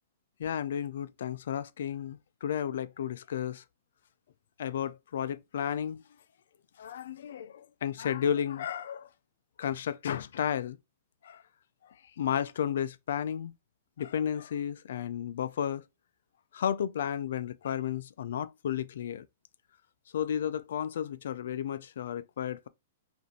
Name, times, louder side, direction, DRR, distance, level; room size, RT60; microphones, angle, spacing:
voice 1, 0.4-3.6 4.6-6.0 6.8-9.1 9.6-10.8 11.2-11.4 12.2-13.5 14.0-15.8 16.5-19.3 20.1-22.7, left 9 dB, 75° left, 0.4 m, -33 dB
5.2 x 2.6 x 2.7 m
hypercardioid pair, 155°, 0 cm